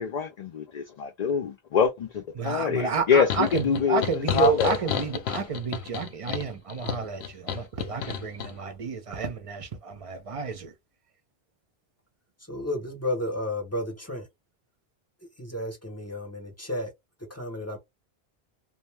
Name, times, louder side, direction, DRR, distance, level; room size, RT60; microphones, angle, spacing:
voice 1, 0.0-4.8, left 6 dB, 55° left, 0.5 m, -25 dB
voice 2, 2.3-10.7, right 5 dB, 40° right, 0.5 m, -30 dB
sound 1, 3.3-8.5, left 8 dB, 75° left, 0.8 m, -32 dB
voice 3, 12.5-14.2 15.4-16.9 17.3-17.8, left 1 dB, 15° left, 0.7 m, -32 dB
2.6 x 2.1 x 3.2 m
omnidirectional pair, 1.1 m